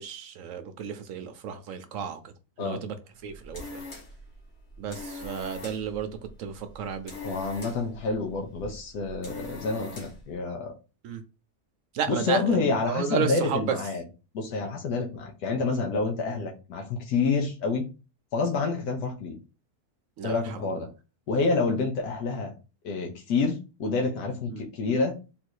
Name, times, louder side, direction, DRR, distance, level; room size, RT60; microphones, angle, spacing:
voice 1, 0.0-2.2 2.6-3.0 3.2-3.8 4.8-6.1 6.4-7.2 11.0-11.2 11.9-13.8 20.2-20.6 24.5-24.6, right 7 dB, 65° right, 9 dB, 0.9 m, -32 dB
sound 1, 3.2-10.3, left 2 dB, 45° left, 1.4 m, -43 dB
voice 2, 7.2-10.7 12.1-14.0 14.3-17.9 18.3-19.4 20.2-20.9 21.3-22.5 22.8-25.2, left 4 dB, 90° left, 1 dB, 1.3 m, -28 dB
3.8 x 2.6 x 4.5 m, 0.31 s
omnidirectional pair, 1.6 m